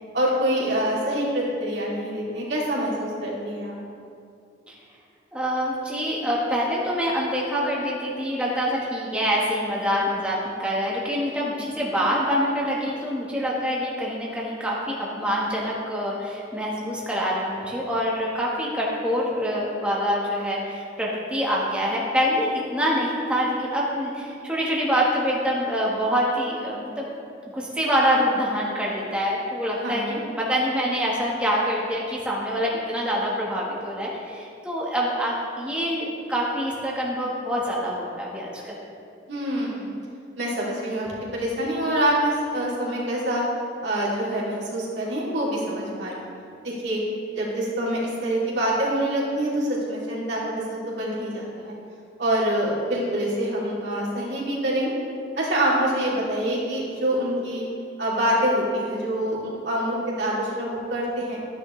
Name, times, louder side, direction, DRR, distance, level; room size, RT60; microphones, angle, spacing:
voice 1, 0.1-3.8 29.8-30.2 39.3-39.9 40.3-43.4 43.8-46.2 46.6-47.0 47.3-51.7 52.2-55.0 55.4-57.6 58.0-61.4, right 1 dB, 70° right, -6 dB, 2.9 m, -26 dB
voice 2, 5.3-27.1 27.5-38.7, equal, 5° right, -5 dB, 1.3 m, -25 dB
14.0 x 9.9 x 3.2 m, 2.5 s
head